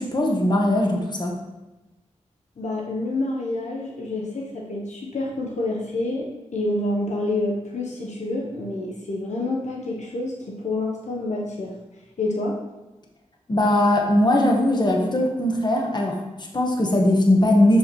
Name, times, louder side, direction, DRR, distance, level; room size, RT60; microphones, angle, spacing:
voice 1, 0.0-1.4 13.5-17.8, left 1 dB, 35° left, 0 dB, 1.3 m, -20 dB
voice 2, 2.6-11.7 12.2-12.6, left 2 dB, 65° left, -2 dB, 1.1 m, -28 dB
6.9 x 5.1 x 3.2 m, 1.1 s
cardioid pair, 50°, 13 cm